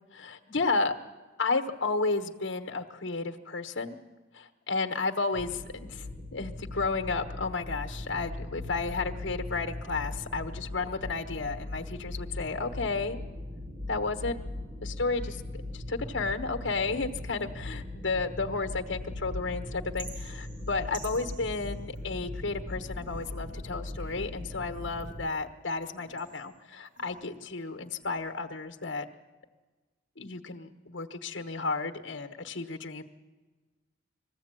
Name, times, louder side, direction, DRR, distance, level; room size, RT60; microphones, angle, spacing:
voice 1, 0.1-0.9 1.4-4.0 4.3-6.1 6.3-13.2 13.9-14.4 14.8-29.0 30.2-33.0, left 3 dB, 70° left, 5 dB, 1.3 m, -32 dB
sound 1, 5.3-25.3, left 1 dB, 30° right, 0.9 m, -39 dB
sound 2, 20.0-22.4 22.9-24.5 25.0-27.5 27.9-28.5, right 3 dB, 75° right, 2.6 m, -51 dB
21.0 x 15.0 x 9.0 m, 1.3 s
head